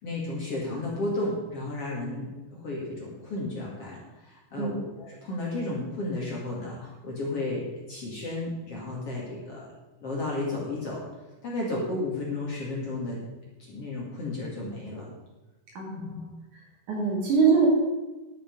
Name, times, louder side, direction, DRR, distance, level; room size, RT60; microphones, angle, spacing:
voice 1, 0.0-2.3 2.5-9.7 10.0-11.0 11.4-13.2 13.7-15.1 15.9-16.2, left 2 dB, 45° left, -4 dB, 2.6 m, -33 dB
voice 2, 15.8-16.2 16.9-17.7, right 5 dB, 55° right, -2 dB, 3.6 m, -23 dB
11.5 x 8.8 x 5.2 m, 1.1 s
omnidirectional pair, 4.5 m